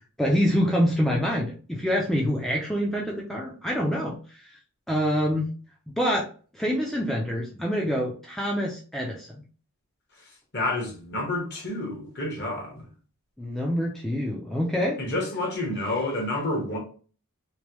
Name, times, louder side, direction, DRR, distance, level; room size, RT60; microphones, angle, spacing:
voice 1, 0.2-4.4 4.9-5.5 6.0-6.3 6.5-9.4 13.4-15.0, equal, ahead, 0.3 m, -26 dB
voice 2, 10.5-12.8 15.0-16.8, left 2 dB, 50° left, 1.1 m, -29 dB
3.0 x 2.2 x 3.0 m
head